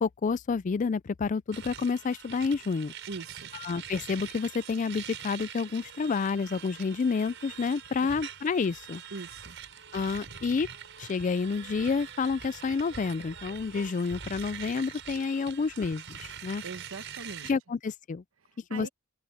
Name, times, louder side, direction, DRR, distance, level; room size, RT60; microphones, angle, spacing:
voice 1, 0.0-2.9 3.5-9.0 9.9-10.7 11.0-16.6 17.4-18.2 18.7-18.9, left 5 dB, 35° left, 0.4 m, -29 dB
sound 1, 1.5-17.5, right 8 dB, 65° right, 5.8 m, -44 dB
voice 2, 3.1-3.5 8.0-8.1 9.1-9.6 16.6-17.5 18.7-18.9, right 3 dB, 80° right, 1.1 m, -41 dB
open air
head